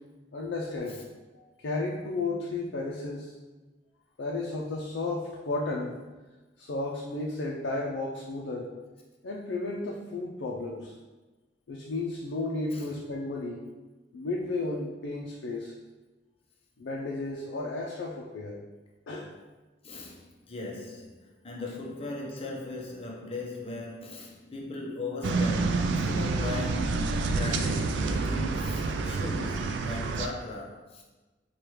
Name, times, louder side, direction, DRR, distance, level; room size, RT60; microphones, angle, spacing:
voice 1, 0.3-1.0 1.3-3.3 4.2-6.0 6.6-8.7 9.2-10.9 11.7-13.6 14.1-15.7 16.8-18.6 19.1-19.3, left 2 dB, 75° left, 0.4 m, -33 dB
voice 2, 19.8-31.0, left 2 dB, 30° left, 0.6 m, -38 dB
sound 1, 25.2-30.3, right 3 dB, 70° right, 0.3 m, -28 dB
4.8 x 2.3 x 3.0 m
head